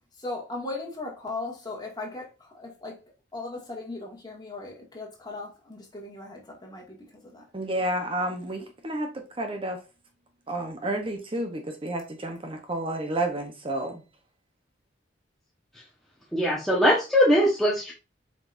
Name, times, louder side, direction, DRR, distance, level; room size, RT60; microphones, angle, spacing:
voice 1, 0.2-3.0 3.3-7.0 7.2-7.4, left 2 dB, 20° left, 2.1 m, -37 dB
voice 2, 7.5-9.1 9.4-9.8 10.5-14.0, right 1 dB, 30° right, 0.9 m, -30 dB
voice 3, 16.3-17.9, equal, ahead, 1.2 m, -21 dB
7.3 x 5.2 x 2.6 m
head